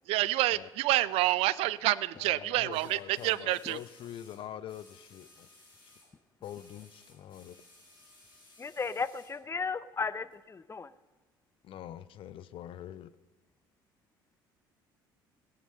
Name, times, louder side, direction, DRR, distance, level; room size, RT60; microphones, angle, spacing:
voice 1, 0.1-3.8, right 17 dB, 60° right, 0.5 m, -28 dB
sound 1, 1.1-1.3 2.7-6.1 6.4-9.4 10.3-10.4, left 2 dB, 90° left, 4.4 m, -59 dB
voice 2, 2.2-5.5 6.4-7.6 11.6-13.1, left 11 dB, 55° left, 0.7 m, -44 dB
voice 3, 8.6-10.9, left 5 dB, 25° left, 0.8 m, -35 dB
19.0 x 9.4 x 5.6 m
hypercardioid pair, 60°, 11 cm